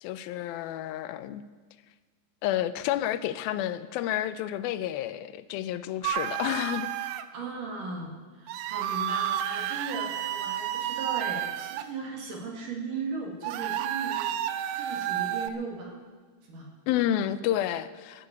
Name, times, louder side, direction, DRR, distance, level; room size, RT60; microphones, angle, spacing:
voice 1, 0.0-1.5 2.4-6.9 16.9-18.3, left 12 dB, 80° left, 14 dB, 2.4 m, -30 dB
sound 1, 6.0-7.2 8.5-11.8 13.4-15.5, right 11 dB, 80° right, 2.3 m, -31 dB
voice 2, 7.3-16.0 16.5-16.7, right 3 dB, 60° right, 0 dB, 3.7 m, -37 dB
15.0 x 7.3 x 9.5 m, 1.5 s
omnidirectional pair, 4.3 m